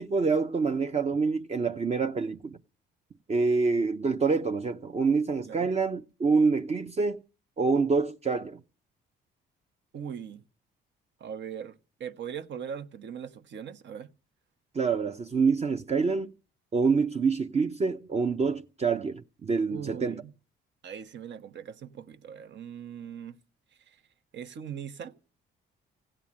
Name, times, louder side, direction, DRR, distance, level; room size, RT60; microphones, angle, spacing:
voice 1, 0.0-2.6 3.3-7.2 7.6-8.6 14.7-16.3 16.7-20.2, right 4 dB, 35° right, 0.7 m, -26 dB
voice 2, 9.9-10.4 11.2-14.1 19.7-20.3 20.8-23.4 23.7-24.0 24.3-25.2, right 8 dB, 65° right, 1.1 m, -40 dB
16.0 x 9.0 x 8.6 m
cardioid pair, 90°, 20 cm